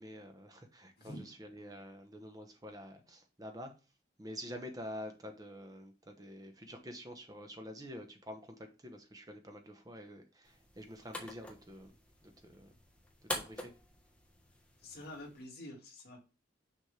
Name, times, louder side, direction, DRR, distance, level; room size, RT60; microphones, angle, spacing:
voice 1, 0.0-3.7 4.2-11.9 12.2-12.7 13.2-13.7, equal, 20° right, 5 dB, 1.0 m, -48 dB
voice 2, 1.0-1.3 14.8-16.2, left 1 dB, 55° left, 0 dB, 2.0 m, -47 dB
sound 1, 10.5-15.5, left 1 dB, 5° left, 1.2 m, -46 dB
6.5 x 6.2 x 3.3 m, 0.30 s
head